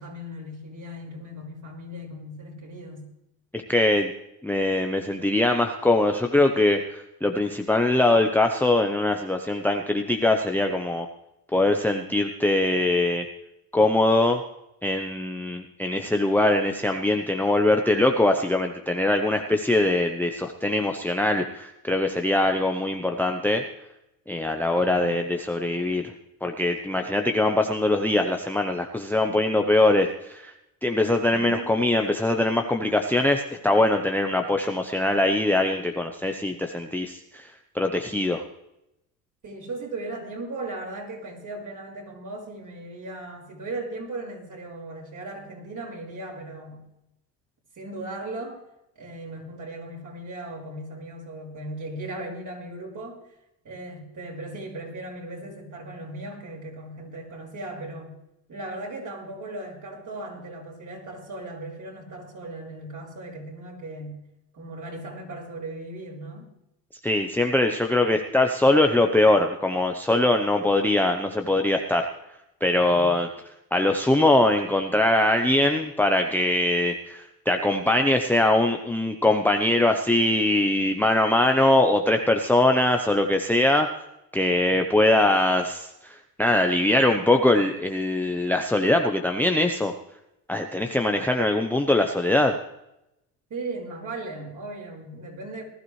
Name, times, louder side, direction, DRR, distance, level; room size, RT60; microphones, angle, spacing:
voice 1, 0.0-3.1 24.7-25.1 31.3-31.7 39.4-46.8 47.8-48.6 48.9-53.2 53.6-58.1 58.5-64.2 64.5-66.5 72.8-73.1 93.5-95.6, right 2 dB, 40° right, -1 dB, 5.1 m, -37 dB
voice 2, 3.5-4.1 4.4-11.1 11.5-13.3 13.7-14.4 14.8-23.6 24.3-26.0 26.4-30.5 30.8-37.5 37.7-38.4 67.0-72.1 72.6-73.3 73.7-83.9 84.3-89.9 90.5-92.6, left 1 dB, 5° left, 5 dB, 0.8 m, -22 dB
19.5 x 12.5 x 3.2 m, 0.86 s
supercardioid pair, 95°, 49 cm